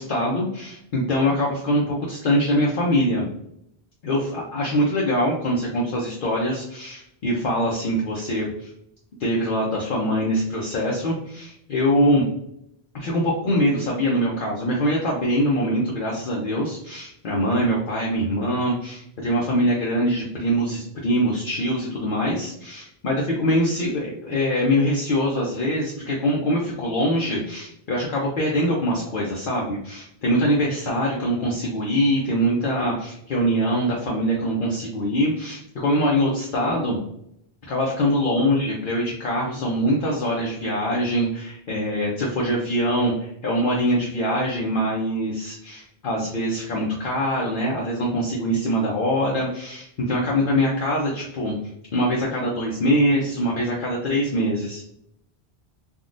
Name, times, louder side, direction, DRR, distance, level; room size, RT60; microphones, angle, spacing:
voice 1, 0.0-3.2 4.0-8.7 9.2-12.2 12.9-37.0 37.7-51.5 51.9-54.8, equal, 60° left, -4 dB, 0.7 m, -23 dB
3.5 x 2.3 x 2.5 m, 0.74 s
omnidirectional pair, 1.1 m